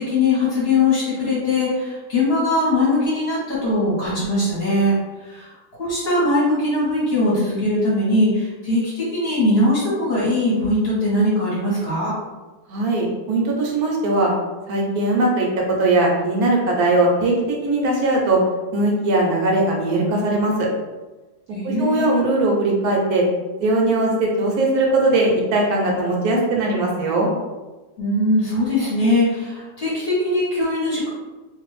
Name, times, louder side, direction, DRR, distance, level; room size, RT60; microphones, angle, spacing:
voice 1, 0.0-5.5 5.8-12.1 21.5-22.2 28.0-31.1, left 2 dB, 45° left, -7 dB, 1.0 m, -21 dB
voice 2, 12.7-14.3 14.7-15.5 15.8-18.4 18.7-20.7 21.6-23.3 23.6-27.3, right 2 dB, 75° right, -1 dB, 1.0 m, -19 dB
2.6 x 2.3 x 3.1 m, 1.2 s
omnidirectional pair, 1.7 m